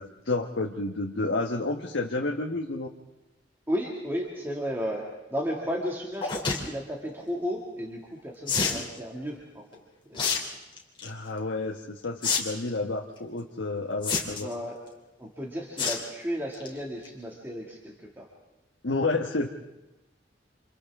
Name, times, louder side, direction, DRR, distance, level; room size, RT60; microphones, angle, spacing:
voice 1, 0.0-2.9 11.0-14.5 18.8-19.5, left 2 dB, 90° left, 1 dB, 1.3 m, -30 dB
voice 2, 3.7-9.6 10.1-10.4 14.4-14.8 15.2-18.3, equal, 10° right, -3 dB, 2.2 m, -34 dB
sound 1, 6.2-6.6 8.5-8.8 10.1-10.4 10.8-11.1 12.2-12.4 12.7-12.8 14.0-14.5 15.8-16.0 16.4-16.7 17.0-17.1 17.3-17.4, left 5 dB, 30° left, 3.1 m, -27 dB
29.5 x 27.0 x 3.6 m, 1.0 s
head